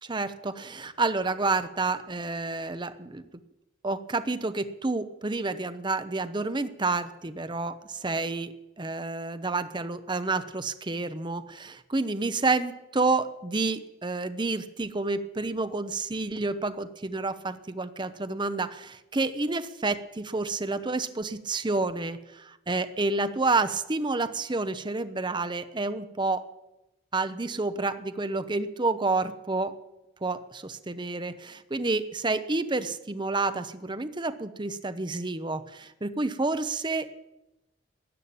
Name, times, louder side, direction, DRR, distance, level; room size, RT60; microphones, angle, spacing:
voice 1, 0.0-3.2 3.8-26.5 27.1-29.7 30.2-37.1, right 3 dB, 25° right, 11 dB, 0.7 m, -29 dB
14.0 x 9.0 x 8.8 m, 0.95 s
head